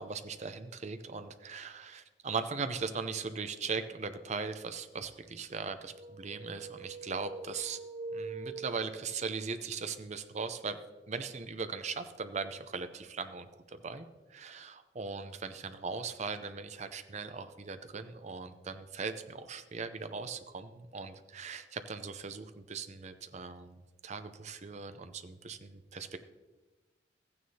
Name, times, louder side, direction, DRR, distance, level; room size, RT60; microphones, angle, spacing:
voice 1, 0.0-7.8 8.1-10.8 11.1-26.2, right 4 dB, 40° right, 9 dB, 0.6 m, -39 dB
sound 1, 5.8-9.4, right 3 dB, 80° right, 2.1 m, -44 dB
14.5 x 9.4 x 2.8 m, 1.2 s
head